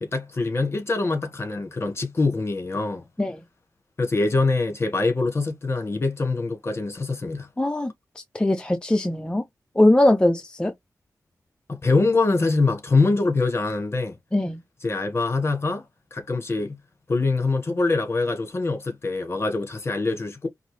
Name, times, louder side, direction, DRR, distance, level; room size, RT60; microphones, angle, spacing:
voice 1, 0.0-3.0 4.0-7.5 11.7-14.2 14.8-15.8 16.1-16.8 17.1-20.5, left 3 dB, 40° left, 1.6 m, -24 dB
voice 2, 7.6-7.9 8.3-9.4 9.8-10.7 14.3-14.6, left 1 dB, 15° left, 0.6 m, -20 dB
5.2 x 2.7 x 3.3 m
wide cardioid pair, 100°, 6 cm